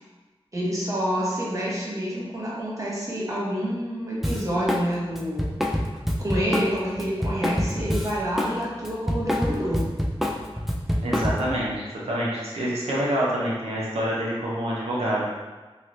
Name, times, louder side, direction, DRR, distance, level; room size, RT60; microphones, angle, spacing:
voice 1, 0.5-5.5 6.2-9.8, equal, 30° right, -6 dB, 0.9 m, -28 dB
Drum kit, 4.2-4.9 5.1-8.5 8.8-11.6, equal, ahead, 0.3 m, -26 dB
voice 2, 11.0-15.2, equal, 90° right, -6 dB, 0.7 m, -27 dB
3.0 x 3.0 x 2.6 m, 1.3 s
wide cardioid pair, 70°, 10 cm